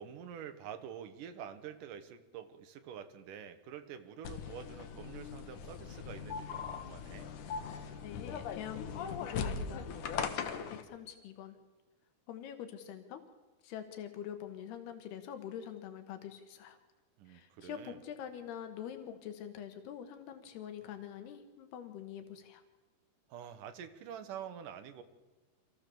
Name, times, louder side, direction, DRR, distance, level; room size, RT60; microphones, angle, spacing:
voice 1, 0.0-7.3 17.2-18.0 23.3-25.0, right 8 dB, 65° right, 9 dB, 2.5 m, -47 dB
Supermarket checkout conveyor belt with cash register till, 4.2-10.8, left 6 dB, 60° left, 2.5 m, -40 dB
voice 2, 8.0-10.0 10.7-11.6 12.3-13.2 13.6-16.8 17.3-22.6, left 9 dB, 85° left, 8 dB, 3.2 m, -45 dB
26.0 x 16.0 x 6.9 m, 1.3 s
omnidirectional pair, 4.5 m